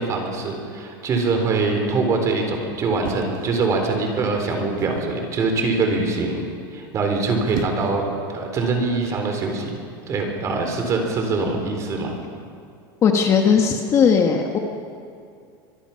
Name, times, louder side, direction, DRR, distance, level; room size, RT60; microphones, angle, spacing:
voice 1, 0.0-8.0 8.3-12.1, right 3 dB, 25° right, 3 dB, 3.7 m, -23 dB
sound 1, 3.0-4.1 4.8-5.2 7.1-8.0 9.0-9.3, right 9 dB, 65° right, 1.6 m, -35 dB
voice 2, 13.0-14.6, left 6 dB, 25° left, 3 dB, 1.4 m, -17 dB
24.5 x 22.0 x 5.8 m, 2.4 s
supercardioid pair, 165°, 12 cm